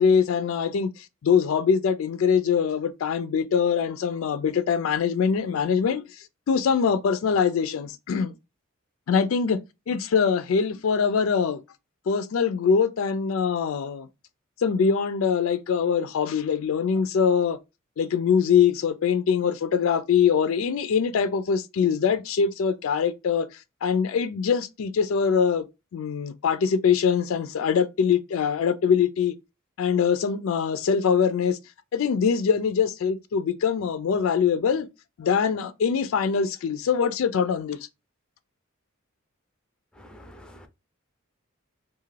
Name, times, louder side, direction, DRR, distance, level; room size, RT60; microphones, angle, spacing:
voice 1, 0.0-8.3 9.1-9.6 9.9-11.6 12.1-14.1 14.6-17.6 18.0-23.5 23.8-25.6 25.9-29.3 29.8-31.6 31.9-34.9 35.2-37.8, left 6 dB, 70° left, 0.4 m, -23 dB
voice 2, 40.0-40.7, equal, 5° left, 0.4 m, -47 dB
2.6 x 2.4 x 3.1 m
head